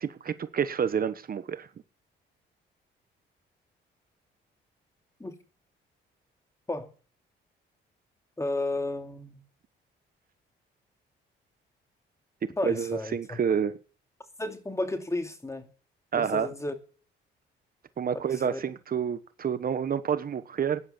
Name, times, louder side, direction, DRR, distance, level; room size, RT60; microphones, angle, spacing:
voice 1, 0.0-1.7 12.6-13.8 16.1-16.5 18.0-20.8, right 7 dB, 45° right, 1.2 m, -29 dB
voice 2, 8.4-9.4 12.6-13.4 14.4-15.7 16.1-16.8 18.1-18.2 18.5-18.6, left 2 dB, 15° left, 2.7 m, -32 dB
16.5 x 10.5 x 6.9 m
cardioid pair, 90°, 20 cm